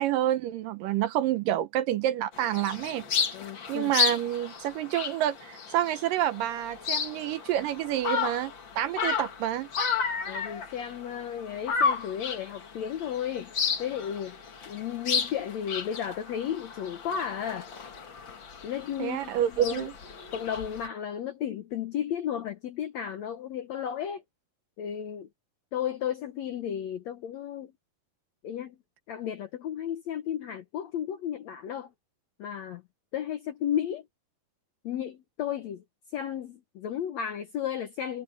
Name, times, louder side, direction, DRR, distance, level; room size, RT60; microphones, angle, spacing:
voice 1, 0.0-3.0 3.7-9.7 19.0-19.9, right 12 dB, 75° right, 2.3 m, -28 dB
sound 1, 2.3-20.9, left 6 dB, 40° left, 1.9 m, -33 dB
voice 2, 3.3-3.9 10.3-14.4 14.7-17.7 18.6-19.9 20.3-24.2 24.8-25.3 25.7-27.7 28.4-28.8 29.1-31.9 32.4-32.8 33.1-34.1 34.8-35.8 36.1-38.2, left 9 dB, 70° left, 1.7 m, -33 dB
omnidirectional pair, 4.3 m